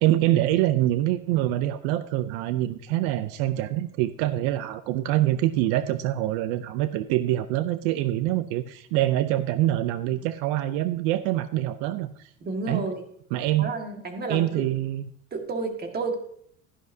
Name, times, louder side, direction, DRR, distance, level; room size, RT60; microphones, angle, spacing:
voice 1, 0.0-12.1 12.7-12.8 13.3-13.7 14.3-15.0, right 14 dB, 85° right, 13 dB, 0.6 m, -25 dB
voice 2, 12.4-13.0 13.6-14.7 15.3-16.2, right 3 dB, 30° right, 4 dB, 1.7 m, -31 dB
12.5 x 11.0 x 2.7 m, 0.65 s
cardioid pair, 125°, 32 cm